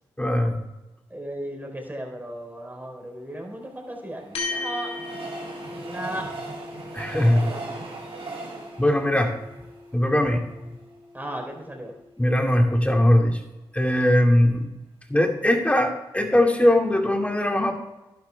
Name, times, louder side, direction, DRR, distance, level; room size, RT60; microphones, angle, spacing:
voice 1, 0.2-0.6 6.9-7.5 8.8-9.3 9.9-10.4 12.2-13.4 13.7-14.7 15.1-17.7, left 1 dB, 15° left, 3 dB, 2.4 m, -20 dB
voice 2, 1.1-4.9 5.7-6.3 7.2-7.8 11.1-11.9, right 1 dB, 20° right, 1 dB, 4.3 m, -36 dB
Train, 3.3-10.6 11.1-11.2 11.4-11.5, right 3 dB, 70° right, 3.4 m, -39 dB
sound 1, 4.3-13.0, left 3 dB, 75° left, 2.6 m, -39 dB
11.5 x 11.5 x 3.5 m, 1.0 s
supercardioid pair, 45°, 10 cm